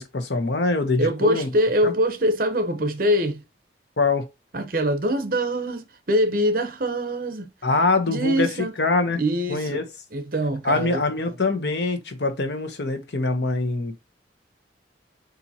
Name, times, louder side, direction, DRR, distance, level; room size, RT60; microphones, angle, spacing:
voice 1, 0.0-1.5 1.8-1.9 4.0-4.3 7.6-9.2 9.5-9.8 10.6-13.9, left 3 dB, 70° left, 0.9 m, -24 dB
voice 2, 1.0-3.4 4.5-7.5 8.1-8.7 9.2-9.8 10.1-11.0, equal, 50° right, 0.8 m, -23 dB
7.0 x 2.6 x 2.8 m
head